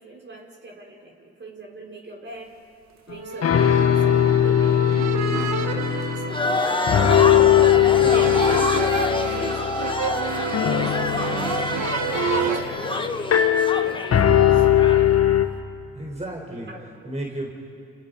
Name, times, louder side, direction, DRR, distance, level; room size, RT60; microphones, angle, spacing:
voice 1, 0.0-2.6 3.1-5.0 6.0-6.6 8.0-11.6 12.0-15.4 16.7-17.1, right 2 dB, 40° right, -1 dB, 5.5 m, -40 dB
sound 1, 3.1-3.2 3.4-6.6 6.9-15.5, left 10 dB, 55° left, 1.7 m, -20 dB
sound 2, 3.1-12.6, right 5 dB, 70° right, 2.2 m, -30 dB
sound 3, 6.3-15.1, left 2 dB, 15° left, 1.7 m, -27 dB
voice 2, 7.7-8.5 15.9-16.7 17.0-17.5, right 1 dB, 25° right, -1 dB, 4.4 m, -33 dB
29.5 x 28.5 x 5.3 m, 2.5 s
supercardioid pair, 65°, 29 cm